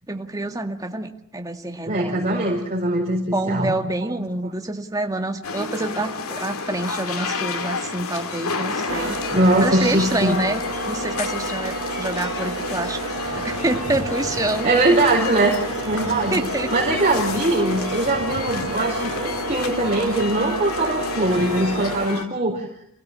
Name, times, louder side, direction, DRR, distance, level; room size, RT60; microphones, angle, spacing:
voice 1, 0.1-2.4 3.3-9.2 9.6-14.7 16.3-16.7, right 2 dB, 15° right, 5 dB, 1.9 m, -27 dB
voice 2, 1.9-3.7 9.3-10.4 14.6-15.5 15.8-16.4 16.7-22.7, right 2 dB, 30° right, -3 dB, 4.6 m, -21 dB
sound 1, 5.4-22.3, left 4 dB, 85° left, 2.1 m, -30 dB
sound 2, 8.9-22.1, right 3 dB, 65° right, 1.4 m, -31 dB
28.5 x 17.0 x 7.5 m, 0.74 s
head